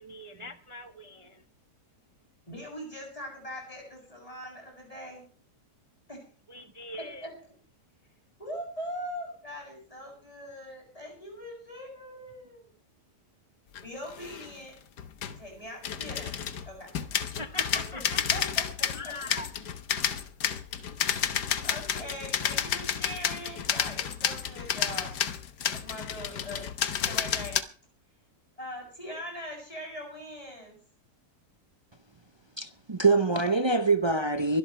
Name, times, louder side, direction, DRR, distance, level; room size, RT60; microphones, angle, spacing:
voice 1, 0.0-1.4 6.5-7.3 17.3-18.4 18.9-19.5, left 2 dB, 20° right, 1.0 m, -41 dB
voice 2, 2.5-5.2 6.1-6.2 7.2-7.3 8.4-12.7 13.8-14.7 15.2-16.4 16.7-16.9 17.7-18.0 18.3-19.1 20.2-20.3 21.6-25.1 25.7-27.6 28.6-30.8, equal, 20° left, 7.5 m, -41 dB
sound 1, 13.8-13.9 14.1-14.6 15.0-15.4 15.8-27.6, left 9 dB, 80° left, 1.7 m, -31 dB
voice 3, 32.6-34.6, right 3 dB, 40° right, 0.4 m, -24 dB
23.5 x 12.5 x 3.3 m
omnidirectional pair, 1.8 m